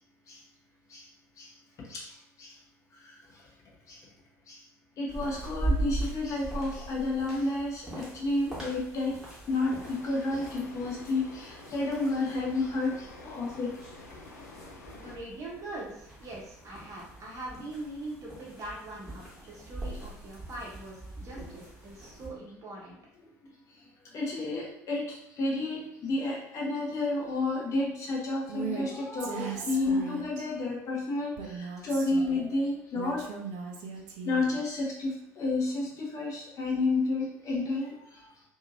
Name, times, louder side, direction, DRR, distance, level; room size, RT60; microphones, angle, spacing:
voice 1, 5.0-9.1 9.5-13.8 21.4-21.5 24.1-33.3 34.2-38.2, left 2 dB, 40° left, -2 dB, 0.9 m, -31 dB
sound 1, 5.1-22.3, right 1 dB, 5° right, 1.3 m, -40 dB
sound 2, 9.5-15.2, left 2 dB, 75° left, 0.4 m, -48 dB
voice 2, 14.9-22.9, right 2 dB, 40° right, -4 dB, 0.9 m, -42 dB
Female speech woman speaking, 28.5-28.8 29.2-30.5 31.4-32.5 32.9-34.6, right 6 dB, 55° right, 0.5 m, -38 dB
2.7 x 2.7 x 2.5 m, 0.76 s
figure-of-eight pair, 60°, 8 cm